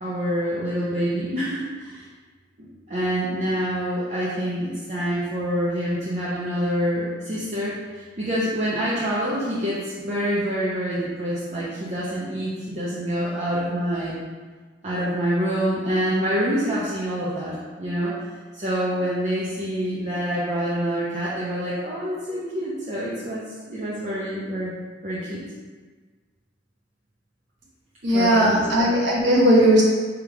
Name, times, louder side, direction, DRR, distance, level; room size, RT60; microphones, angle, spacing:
voice 1, 0.0-2.1 2.6-14.2 14.8-18.1 18.5-24.7 25.0-25.4 28.1-28.6, equal, 35° right, -9 dB, 0.7 m, -26 dB
voice 2, 28.0-29.8, right 1 dB, 65° right, -3 dB, 1.1 m, -17 dB
3.5 x 3.2 x 4.7 m, 1.4 s
head